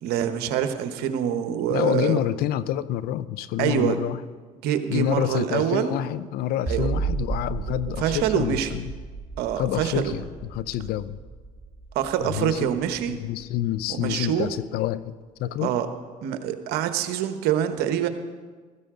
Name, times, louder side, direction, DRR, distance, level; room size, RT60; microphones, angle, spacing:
voice 1, 0.0-2.2 3.6-4.0 4.6-6.0 6.7-6.9 7.7-8.7 9.4-10.1 11.9-13.2 13.9-14.5 15.6-15.9 16.2-18.1, right 10 dB, 70° right, 9 dB, 1.2 m, -25 dB
voice 2, 1.7-4.2 4.9-8.9 9.6-11.2 12.2-12.7 13.1-15.7, left 12 dB, 65° left, 16 dB, 0.6 m, -28 dB
sound 1, 6.7-13.9, right 4 dB, 20° right, 1.6 m, -34 dB
15.5 x 14.0 x 3.8 m, 1.5 s
supercardioid pair, 80°, 17 cm